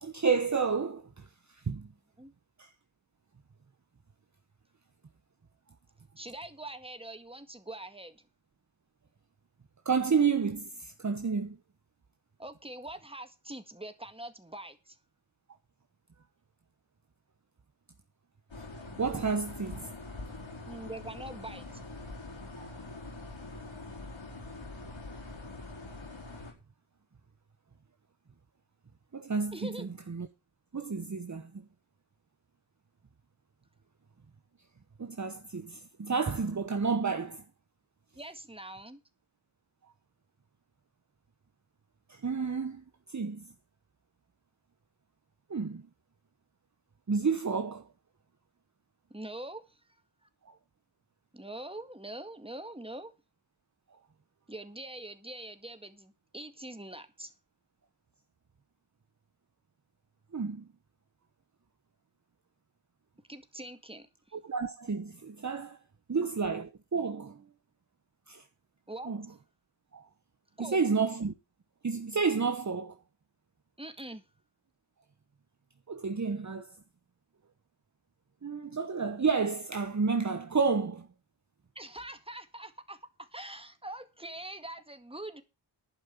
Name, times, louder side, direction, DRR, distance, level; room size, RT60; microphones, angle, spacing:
voice 1, 0.0-1.9 2.6-2.7 9.8-11.6 19.0-19.9 22.6-22.7 29.1-30.3 30.7-31.6 35.0-37.4 42.1-43.5 45.5-45.9 47.1-47.9 50.5-50.6 60.3-60.7 64.3-65.8 66.1-67.4 68.3-68.4 69.0-69.3 69.9-70.1 70.6-71.3 71.8-73.0 75.9-76.7 78.4-81.1, right 5 dB, 35° right, 1.0 m, -31 dB
voice 2, 6.2-8.2 12.4-15.0 20.7-21.8 29.5-29.9 38.2-39.0 49.1-49.8 50.2-50.3 51.3-53.1 54.5-57.3 63.3-64.4 68.9-69.1 70.6-70.8 73.8-74.2 81.8-85.4, right 1 dB, 10° right, 2.0 m, -43 dB
sound 1, 18.5-26.5, left 2 dB, 65° left, 4.5 m, -44 dB
11.5 x 5.5 x 8.4 m
cardioid pair, 55°, 49 cm